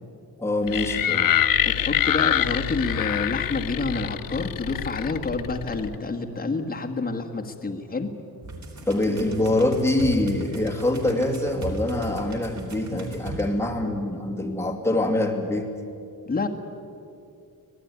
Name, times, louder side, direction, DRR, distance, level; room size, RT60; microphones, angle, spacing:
voice 1, 0.4-1.3 8.9-15.7, left 1 dB, 5° left, 0 dB, 2.7 m, -24 dB
sound 1, 0.7-6.0, left 11 dB, 60° left, 0.7 m, -25 dB
voice 2, 1.6-8.1 16.3-16.5, left 3 dB, 25° left, 2 dB, 1.6 m, -28 dB
sound 2, 8.4-13.5, right 2 dB, 45° right, 4.1 m, -36 dB
25.5 x 18.0 x 9.6 m, 2.6 s
wide cardioid pair, 160°, 38 cm